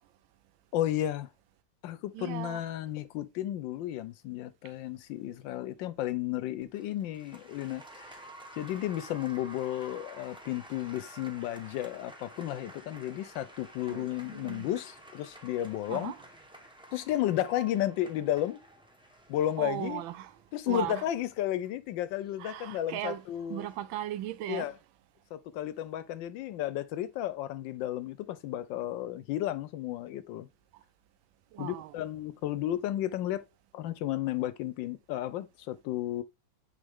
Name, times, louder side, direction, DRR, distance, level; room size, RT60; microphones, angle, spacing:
voice 1, 0.7-1.3 1.8-8.2 8.6-16.1 16.9-18.6 19.3-20.0 20.5-23.7 24.5-24.7 25.3-30.5 31.6-33.4 33.7-36.2, left 13 dB, 75° left, 1.2 m, -33 dB
voice 2, 2.1-2.6 13.9-14.7 15.9-16.2 19.6-20.3 20.7-21.0 22.4-23.2 23.5-24.7 31.5-31.9, right 13 dB, 80° right, 1.3 m, -37 dB
Applause, 6.6-23.7, right 1 dB, 5° right, 0.4 m, -52 dB
9.2 x 3.5 x 3.5 m
omnidirectional pair, 2.2 m